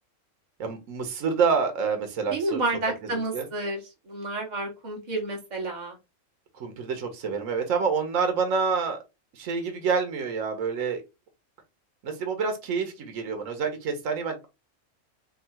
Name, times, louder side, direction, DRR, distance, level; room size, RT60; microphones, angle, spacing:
voice 1, 0.6-2.6 3.3-3.4 6.5-9.0 9.3-11.0 12.0-14.5, right 5 dB, 80° right, 1.2 m, -27 dB
voice 2, 2.3-6.0, right 2 dB, 35° right, 1.4 m, -30 dB
3.6 x 2.2 x 4.3 m
omnidirectional pair, 1.4 m